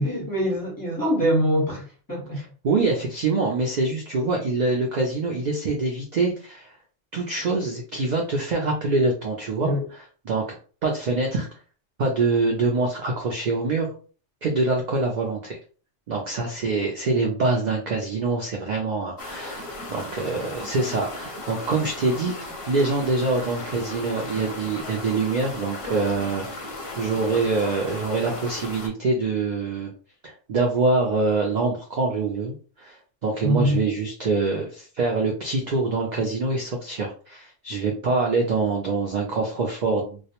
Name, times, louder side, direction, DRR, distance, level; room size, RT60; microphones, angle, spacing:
voice 1, 0.0-2.4 9.6-9.9 33.4-33.8, equal, 20° left, 0.9 m, -24 dB
voice 2, 2.6-6.7 7.1-10.6 10.8-11.5 12.0-13.9 14.4-15.6 16.1-22.4 22.7-29.9 30.2-40.2, right 3 dB, 65° right, 0.4 m, -25 dB
sound 1, 19.2-28.9, left 2 dB, 55° left, 0.8 m, -36 dB
2.2 x 2.1 x 2.8 m
omnidirectional pair, 1.3 m